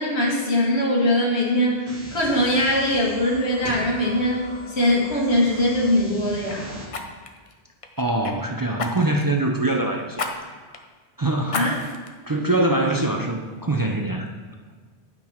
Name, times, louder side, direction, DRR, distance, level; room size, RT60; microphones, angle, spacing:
voice 1, 0.0-4.4 4.7-6.7 11.5-11.7, left 1 dB, 90° left, -3 dB, 1.7 m, -21 dB
sound 1, 1.9-6.9, right 1 dB, 80° right, 1.5 m, -42 dB
sound 2, 3.6-6.1, left 1 dB, 55° right, 1.9 m, -39 dB
Fire, 4.2-4.4 4.8-5.0 6.9-8.4 8.8-9.3 10.1-10.3 10.7-10.8 11.5-12.1 12.6-12.7, left 3 dB, 40° left, 0.6 m, -32 dB
voice 2, 8.0-10.4 10.7-10.8 11.2-11.7 12.3-14.3, right 2 dB, 30° right, 2 dB, 0.4 m, -23 dB
8.4 x 6.0 x 4.4 m, 1.5 s
omnidirectional pair, 1.1 m